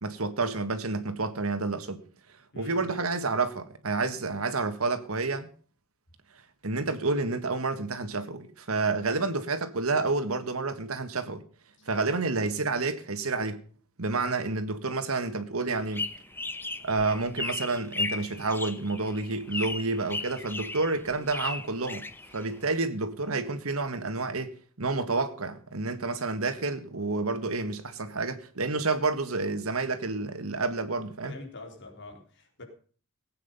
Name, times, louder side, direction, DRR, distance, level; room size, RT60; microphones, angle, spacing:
voice 1, 0.0-2.0 2.5-5.5 6.6-11.4 11.9-13.6 14.0-16.1 16.8-22.1 22.3-31.3, right 3 dB, 75° right, 1.6 m, -29 dB
voice 2, 2.5-2.9 11.8-12.0 31.2-32.6, left 2 dB, 55° left, 3.8 m, -45 dB
sound 1, 15.7-22.7, left 3 dB, 10° left, 0.8 m, -36 dB
18.0 x 8.8 x 5.4 m
head